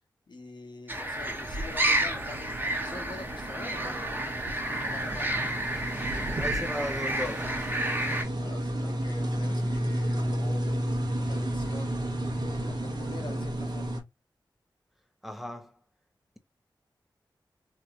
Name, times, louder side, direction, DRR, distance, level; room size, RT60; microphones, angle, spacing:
voice 1, 0.3-5.5 8.4-14.0, left 3 dB, 65° left, 1.0 m, -46 dB
sound 1, 0.9-8.2, right 1 dB, 20° right, 1.2 m, -31 dB
sound 2, 1.2-14.0, right 1 dB, 60° right, 1.2 m, -32 dB
voice 2, 6.4-7.6 15.2-15.8, left 1 dB, ahead, 0.7 m, -36 dB
3.1 x 2.9 x 2.4 m
cardioid pair, 45°, 8 cm